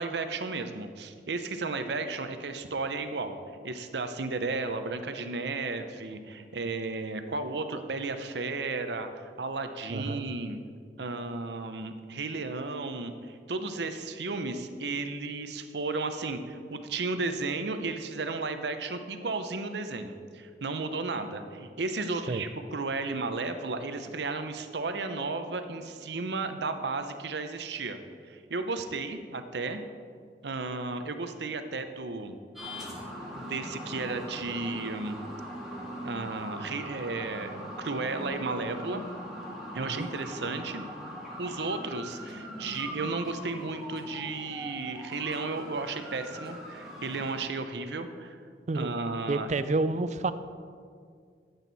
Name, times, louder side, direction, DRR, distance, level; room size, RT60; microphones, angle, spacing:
voice 1, 0.0-3.4 3.6-10.6 11.0-28.0 28.3-29.8 30.4-32.4 33.4-35.2 36.0-37.5 37.8-39.0 39.7-40.9 41.4-48.4 48.7-49.5, right 3 dB, 75° right, 8 dB, 0.8 m, -34 dB
voice 2, 9.9-10.3 22.3-22.4 39.8-40.1 48.7-48.9 49.3-50.3, right 3 dB, 40° right, 12 dB, 0.4 m, -29 dB
sound 1, 32.6-47.3, equal, ahead, 2.3 m, -41 dB
13.5 x 8.1 x 4.1 m, 2.1 s
head